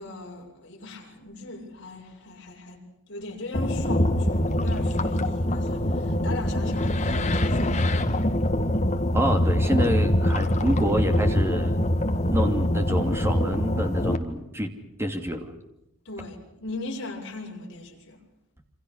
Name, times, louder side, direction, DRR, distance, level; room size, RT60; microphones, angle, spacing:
voice 1, 0.0-2.8 3.1-7.9 16.1-18.2, left 2 dB, 55° left, 7.1 m, -38 dB
sound 1, 3.5-14.2, left 1 dB, 30° left, 1.8 m, -24 dB
voice 2, 9.1-11.8 12.3-14.7 15.0-15.5, equal, 10° right, 2.7 m, -27 dB
28.0 x 26.5 x 6.5 m
head